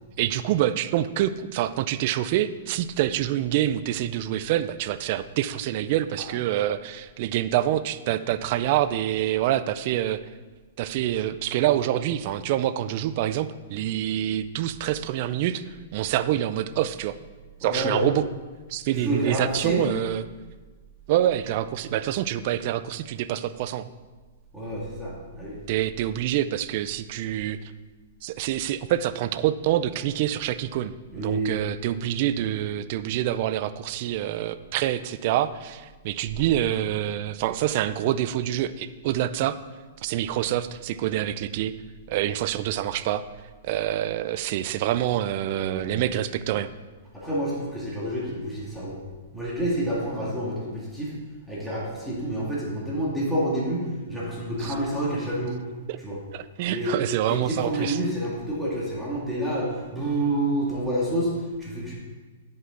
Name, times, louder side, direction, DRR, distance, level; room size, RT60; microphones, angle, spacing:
voice 1, 0.2-10.2 10.8-17.2 17.6-18.3 18.7-20.3 21.1-23.9 25.7-27.6 28.2-39.6 40.0-41.7 42.1-43.2 43.6-46.7 54.6-54.7 55.9-56.0 56.3-58.0, right 12 dB, 50° right, 13 dB, 0.4 m, -26 dB
voice 2, 17.6-18.1 18.9-19.9 24.5-25.6 31.1-31.6 45.6-46.1 47.1-49.0 49.3-51.1 51.5-55.6 56.0-56.2 56.6-61.9, right 1 dB, ahead, -7 dB, 2.0 m, -28 dB
9.7 x 5.5 x 3.8 m, 1.3 s
hypercardioid pair, 140°, 0 cm